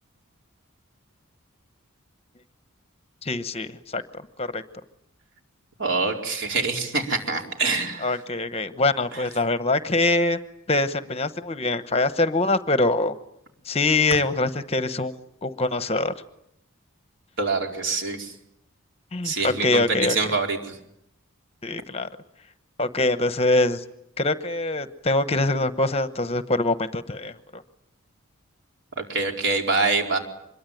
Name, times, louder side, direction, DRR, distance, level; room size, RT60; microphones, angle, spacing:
voice 1, 3.2-4.0 4.4-4.6 8.0-10.4 10.7-13.1 13.7-15.1 15.4-16.1 19.1-20.2 21.6-22.1 22.8-23.8 24.2-27.6, left 2 dB, 30° left, 11 dB, 1.0 m, -24 dB
voice 2, 5.8-8.2 9.1-9.2 17.4-18.3 19.2-19.8 20.1-20.8 29.0-30.2, right 3 dB, 55° right, 2 dB, 4.7 m, -25 dB
25.5 x 22.5 x 9.3 m, 0.77 s
head